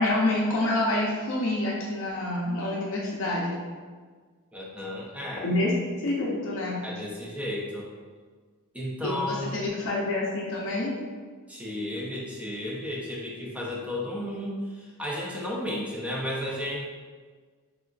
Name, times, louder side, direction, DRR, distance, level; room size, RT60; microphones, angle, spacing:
voice 1, 0.0-3.6 5.4-5.7 6.0-6.8 9.0-10.9, left 2 dB, 60° left, -4 dB, 0.5 m, -27 dB
voice 2, 4.5-5.5 6.8-7.9 8.7-9.5 11.5-16.8, left 1 dB, 5° right, -4 dB, 0.4 m, -33 dB
3.6 x 2.3 x 2.4 m, 1.5 s
head